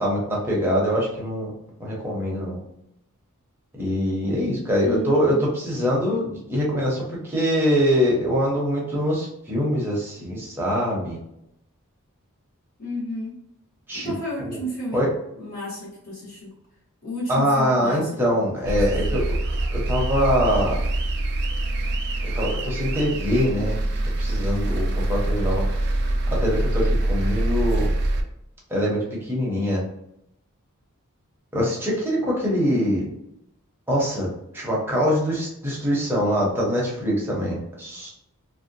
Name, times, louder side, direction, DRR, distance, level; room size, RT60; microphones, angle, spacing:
voice 1, 0.0-1.5 1.8-2.6 3.8-11.2 13.9-14.1 14.5-14.6 14.9-15.1 17.3-19.2 19.7-20.8 22.2-23.8 24.2-25.6 26.3-27.9 28.7-29.8 31.5-33.0 33.9-34.3 34.5-38.1, equal, 10° right, -5 dB, 0.7 m, -23 dB
voice 2, 4.8-5.5 12.8-13.3 13.9-15.0 15.4-16.5 17.0-18.2 18.7-19.2 32.7-33.1, left 1 dB, 45° left, -7 dB, 0.9 m, -33 dB
sound 1, 18.7-28.2, right 1 dB, 50° right, 0.3 m, -24 dB
2.6 x 2.1 x 2.6 m, 0.79 s
head